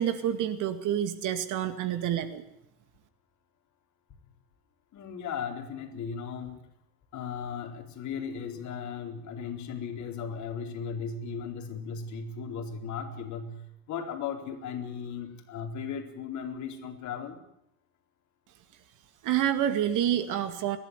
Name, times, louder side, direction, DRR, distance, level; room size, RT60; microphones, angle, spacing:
voice 1, 0.0-2.4 19.2-20.8, right 10 dB, 40° right, 10 dB, 2.1 m, -28 dB
voice 2, 4.9-6.6 7.1-17.4, left 6 dB, 35° left, 4 dB, 4.2 m, -36 dB
30.0 x 12.0 x 9.8 m, 0.77 s
hypercardioid pair, 110°, 47 cm